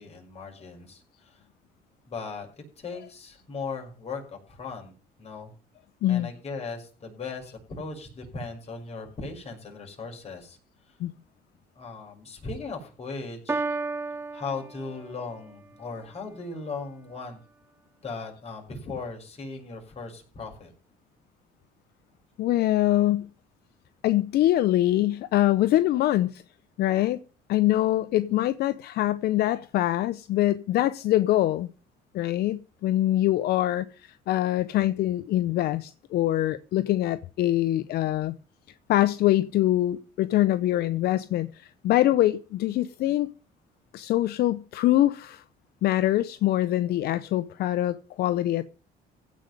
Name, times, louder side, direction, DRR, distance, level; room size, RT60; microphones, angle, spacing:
voice 1, 0.0-1.4 2.1-2.5 2.8-4.9 5.2-5.5 6.1-10.6 10.9-11.0 11.8-13.6 14.3-17.4 18.0-20.7, left 4 dB, 40° left, 6.0 m, -38 dB
Piano, 13.5-15.5, right 3 dB, 15° right, 0.9 m, -32 dB
voice 2, 22.4-23.3 24.0-26.4 26.8-27.2 27.5-31.7 32.1-38.3 38.9-43.3 43.9-45.4 45.8-48.6, left 14 dB, 70° left, 0.7 m, -24 dB
16.0 x 5.3 x 9.2 m
cardioid pair, 110°, 17 cm